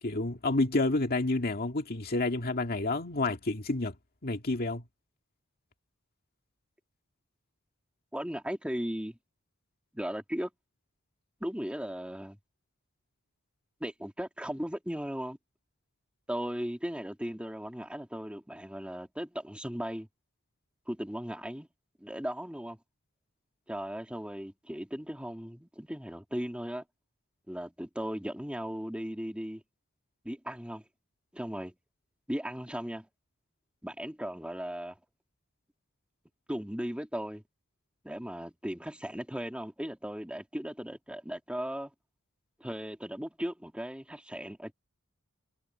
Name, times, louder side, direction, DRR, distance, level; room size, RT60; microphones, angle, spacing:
voice 1, 0.0-3.9 4.2-4.8, left 2 dB, 45° left, 2.1 m, -29 dB
voice 2, 8.1-9.2 9.9-10.5 11.4-12.4 13.8-15.4 16.3-20.1 20.9-21.7 22.0-22.8 23.7-26.8 27.5-29.6 30.2-30.8 31.3-31.7 32.3-33.1 33.8-35.0 36.5-37.4 38.0-41.9 42.6-44.7, equal, 5° right, 2.7 m, -37 dB
head